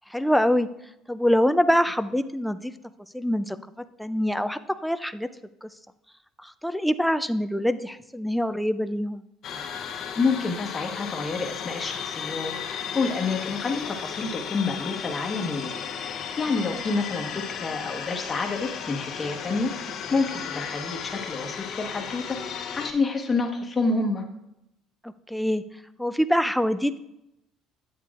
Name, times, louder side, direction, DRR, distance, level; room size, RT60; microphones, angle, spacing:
voice 1, 0.1-0.7 1.1-2.7 3.1-3.6 4.0-5.3 5.6-5.7 6.4-9.2 25.0-25.6 26.0-27.0, equal, ahead, 12 dB, 0.3 m, -24 dB
sound 1, 9.4-22.9, left 7 dB, 50° left, 0.7 m, -35 dB
voice 2, 10.1-15.7 16.0-24.2, left 3 dB, 25° left, 2 dB, 1.1 m, -28 dB
8.4 x 8.2 x 2.4 m, 0.85 s
cardioid pair, 130°, 0 cm